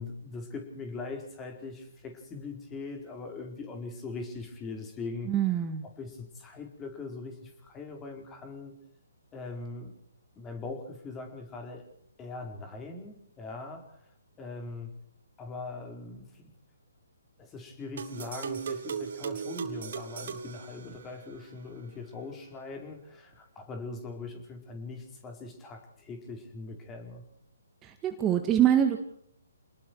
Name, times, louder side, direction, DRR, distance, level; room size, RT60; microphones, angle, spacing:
voice 1, 0.0-5.3 5.8-8.8 9.3-10.0 10.4-11.8 12.2-14.0 14.4-14.9 15.4-16.5 17.4-27.2, left 3 dB, 15° left, 3 dB, 4.6 m, -41 dB
voice 2, 5.3-5.8 27.8-29.0, right 10 dB, 20° right, 5 dB, 1.8 m, -24 dB
sound 1, 18.0-21.4, right 6 dB, 55° right, 3.4 m, -37 dB
29.0 x 20.5 x 4.8 m, 0.69 s
figure-of-eight pair, 140°, 0 cm